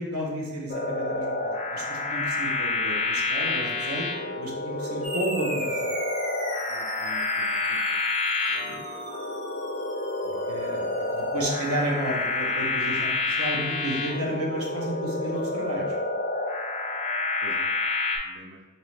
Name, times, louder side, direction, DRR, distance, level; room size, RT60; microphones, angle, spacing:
voice 1, 0.0-5.9 8.6-8.8 10.5-10.8 11.1-15.8, right 1 dB, 80° right, -1 dB, 0.9 m, -32 dB
sound 1, 0.7-18.2, left 2 dB, 30° left, 0.4 m, -29 dB
sound 2, 5.0-13.9, right 1 dB, 30° right, 1.1 m, -39 dB
voice 2, 6.7-7.8 10.7-10.9 15.8-15.9 17.4-17.7 18.2-18.6, right 2 dB, 50° right, 2 dB, 0.5 m, -43 dB
3.9 x 3.0 x 3.2 m, 1.2 s
head